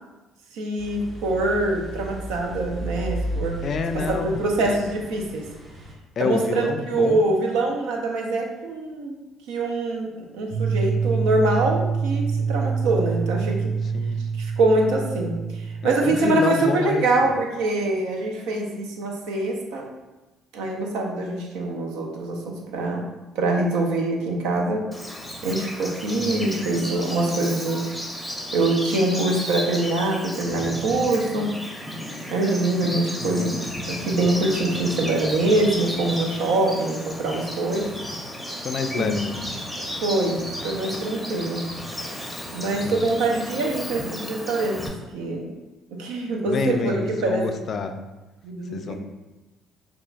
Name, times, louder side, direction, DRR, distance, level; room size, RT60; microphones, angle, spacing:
voice 1, 0.5-3.6 3.9-5.5 6.2-9.2 9.5-10.1 10.3-13.7 14.4-19.9 20.5-23.1 23.4-24.8 25.4-27.9 28.5-31.5 32.3-37.9 38.9-39.1 40.0-41.7 42.5-44.8 45.1-45.5 45.9-47.5 48.4-49.0, right 2 dB, 80° right, 1 dB, 0.5 m, -24 dB
sound 1, 0.8-5.9, right 1 dB, 45° right, 0.9 m, -34 dB
voice 2, 3.6-4.3 4.6-4.8 6.2-7.2 13.9-14.2 15.8-17.3 26.2-26.5 33.2-33.5 38.6-39.4 42.8-43.1 46.4-48.0 48.7-49.0, left 4 dB, 50° left, 6 dB, 0.3 m, -28 dB
sound 2, 10.5-16.4, right 5 dB, 30° right, 1.3 m, -26 dB
Bird vocalization bird call bird song, 24.9-44.9, equal, ahead, 0.7 m, -33 dB
5.0 x 2.4 x 2.3 m, 1.1 s
supercardioid pair, 65°, 0 cm